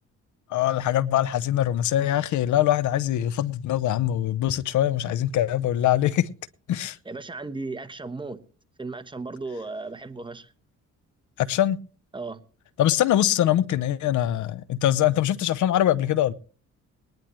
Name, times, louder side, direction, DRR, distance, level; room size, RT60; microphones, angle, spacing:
voice 1, 0.5-6.3 6.7-7.0 11.4-11.8 12.8-16.3, left 12 dB, 75° left, 0.8 m, -23 dB
voice 2, 7.0-8.4 8.8-10.5 12.1-12.4, right 3 dB, 15° right, 1.1 m, -35 dB
20.5 x 10.5 x 3.1 m
cardioid pair, 90°, 30 cm